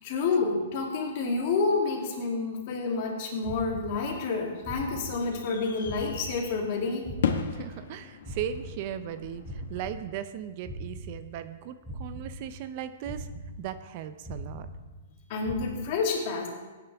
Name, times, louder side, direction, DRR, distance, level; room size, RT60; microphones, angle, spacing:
voice 1, 0.0-7.1 15.3-16.5, left 4 dB, 45° left, -1 dB, 2.8 m, -29 dB
sound 1, 3.4-4.4 4.6-5.6 5.8-8.0 8.2-10.4 10.6-11.6 11.8-12.8 13.0-14.0 14.2-15.2 15.4-15.7, right 1 dB, ahead, 3.6 m, -41 dB
sound 2, 4.3-9.9, left 6 dB, 70° left, 1.1 m, -37 dB
voice 2, 7.5-13.3 13.6-14.7, right 10 dB, 40° right, 12 dB, 0.6 m, -37 dB
16.5 x 9.5 x 3.5 m, 1.2 s
hypercardioid pair, 155°, 0 cm